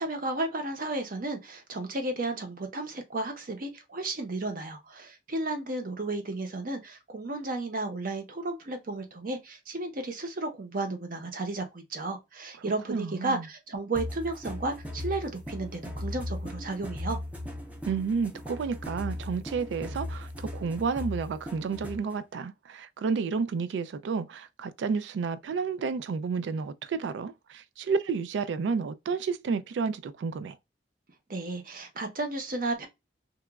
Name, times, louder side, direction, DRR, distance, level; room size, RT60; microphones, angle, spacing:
voice 1, 0.0-17.2 31.3-32.9, right 2 dB, 50° right, 0.7 m, -33 dB
voice 2, 12.9-13.5 17.8-30.6, right 5 dB, 80° right, 0.3 m, -31 dB
sound 1, 14.0-22.1, left 1 dB, 10° right, 0.4 m, -38 dB
2.9 x 2.2 x 2.2 m
head